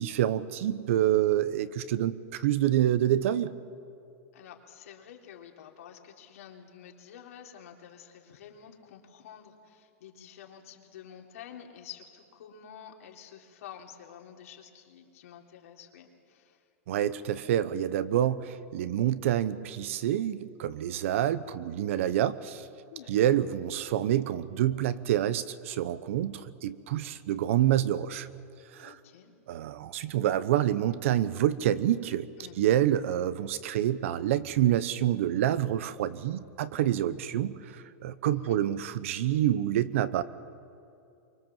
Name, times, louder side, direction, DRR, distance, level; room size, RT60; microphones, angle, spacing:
voice 1, 0.0-3.5 16.9-22.7 23.1-28.3 28.7-28.9 29.5-32.3 32.6-40.2, right 12 dB, 60° right, 15 dB, 1.0 m, -27 dB
voice 2, 4.3-16.7 22.9-23.4 28.8-29.3 32.4-32.6 38.3-38.6, left 9 dB, 75° left, 1 dB, 3.4 m, -49 dB
24.0 x 24.0 x 7.5 m, 2.6 s
supercardioid pair, 175°, 8 cm